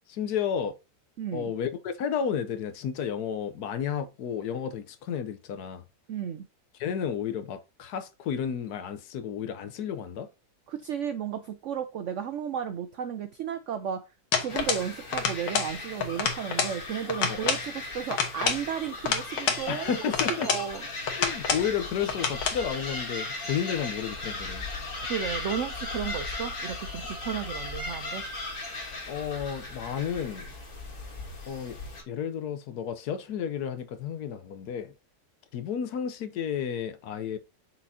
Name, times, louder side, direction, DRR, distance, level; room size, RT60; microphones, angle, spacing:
voice 1, 0.1-0.8 1.3-5.8 6.8-10.3 17.3-17.5 19.7-20.5 21.1-24.7 29.1-30.5 31.5-31.8 32.1-34.9 35.5-37.4, left 8 dB, 70° left, 1.2 m, -32 dB
voice 2, 1.2-1.5 6.1-6.4 10.7-14.0 14.4-20.9 25.0-28.2, right 8 dB, 80° right, 0.6 m, -34 dB
sound 1, 14.3-14.9 15.1-15.7 16.0-16.8 17.1-17.7 18.1-19.6 20.1-20.7 21.1-21.7 22.1-22.6, left 6 dB, 85° left, 1.8 m, -28 dB
sound 2, 14.5-32.0, left 2 dB, 50° left, 2.3 m, -37 dB
6.1 x 5.9 x 2.7 m
omnidirectional pair, 1.9 m